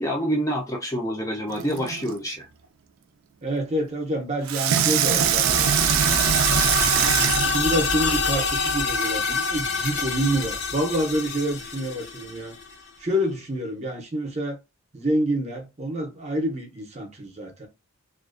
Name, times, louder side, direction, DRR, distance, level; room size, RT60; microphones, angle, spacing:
voice 1, 0.0-2.5, equal, 15° left, 0.4 m, -27 dB
Water tap faucet / Sink (filling or washing), 1.5-2.2 4.5-8.4 9.1-9.2, right 9 dB, 75° right, 0.3 m, -23 dB
voice 2, 3.4-5.7 7.0-12.5 13.0-14.6 14.9-17.7, right 1 dB, 30° right, 0.6 m, -27 dB
sound 1, 4.9-12.7, left 4 dB, 60° left, 0.8 m, -27 dB
2.4 x 2.2 x 2.4 m
head